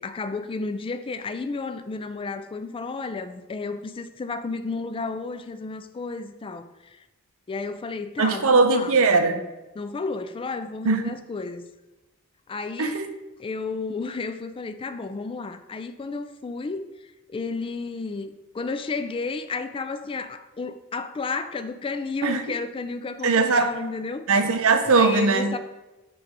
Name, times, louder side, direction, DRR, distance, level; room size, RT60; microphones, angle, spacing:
voice 1, 0.0-7.0 7.5-8.9 9.8-11.7 12.5-13.0 13.4-24.3 24.9-25.6, left 4 dB, 25° left, 10 dB, 0.3 m, -32 dB
voice 2, 8.2-9.4 10.8-11.0 12.8-13.1 22.2-22.6 23.2-23.7 24.3-25.6, right 4 dB, 70° right, 8 dB, 0.6 m, -20 dB
6.1 x 3.2 x 5.0 m, 1.1 s
head